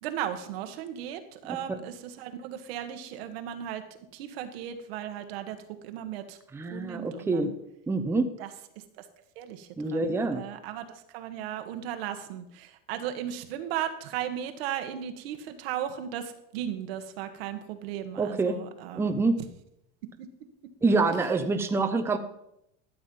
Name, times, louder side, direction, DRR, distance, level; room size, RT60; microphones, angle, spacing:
voice 1, 0.0-3.8 4.1-5.6 5.8-6.4 6.7-7.5 8.4-8.5 8.7-9.1 9.3-19.2 20.2-20.3, right 10 dB, 80° right, 8 dB, 1.5 m, -36 dB
voice 2, 1.5-1.8 6.5-7.5 7.9-8.3 9.8-10.4 18.2-18.6 19.0-19.4 20.8-22.2, right 3 dB, 10° right, 7 dB, 0.7 m, -26 dB
13.0 x 7.4 x 5.4 m, 0.80 s
supercardioid pair, 145°, 30 cm